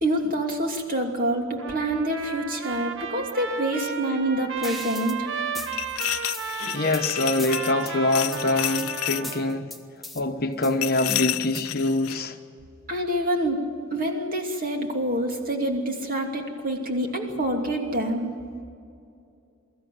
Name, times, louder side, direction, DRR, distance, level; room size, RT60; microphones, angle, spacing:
voice 1, 0.0-5.3 12.9-13.6 13.9-18.3, right 1 dB, 40° right, 2 dB, 2.8 m, -26 dB
Trumpet, 1.6-9.6, right 6 dB, 55° right, 1.5 m, -34 dB
sound 1, 4.6-5.2 5.5-7.0 7.4-7.9 8.3-8.9 9.2-10.2 10.6-11.8, left 1 dB, ahead, 1.2 m, -38 dB
sound 2, 5.7-7.8 8.1-9.3 10.8-12.2, left 15 dB, 80° left, 0.5 m, -30 dB
voice 2, 6.6-9.7 10.1-12.4, left 2 dB, 45° left, 6 dB, 1.1 m, -25 dB
24.0 x 14.0 x 9.2 m, 2.5 s
head